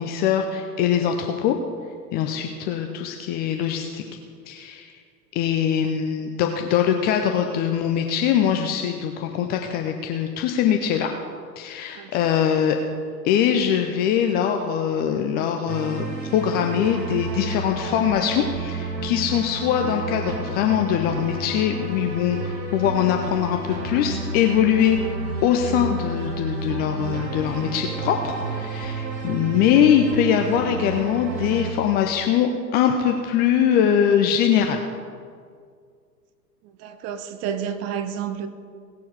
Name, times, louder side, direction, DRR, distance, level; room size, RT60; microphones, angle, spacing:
voice 1, 0.0-1.6 2.1-4.0 4.5-5.0 5.3-11.1 11.6-12.8 13.2-16.1 16.3-25.1 25.4-34.9, left 9 dB, 20° left, 4 dB, 0.4 m, -22 dB
sound 1, 15.7-31.7, right 3 dB, 90° right, 1.4 m, -31 dB
voice 2, 36.8-38.5, right 8 dB, 30° right, 10 dB, 0.9 m, -30 dB
18.0 x 6.9 x 4.7 m, 2.1 s
figure-of-eight pair, 95°, 50 cm